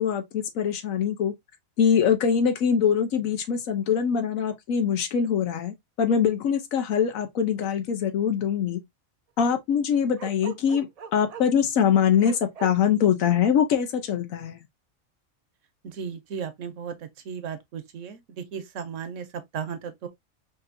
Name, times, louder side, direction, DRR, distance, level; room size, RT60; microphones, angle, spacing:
voice 1, 0.0-1.3 1.8-8.8 9.4-14.6, left 7 dB, 75° left, 1.2 m, -23 dB
Bark, 10.2-11.6 12.2-12.7, right 8 dB, 85° right, 0.3 m, -39 dB
voice 2, 15.8-19.3 19.5-20.1, right 7 dB, 70° right, 1.0 m, -35 dB
5.2 x 2.7 x 2.5 m
omnidirectional pair, 1.4 m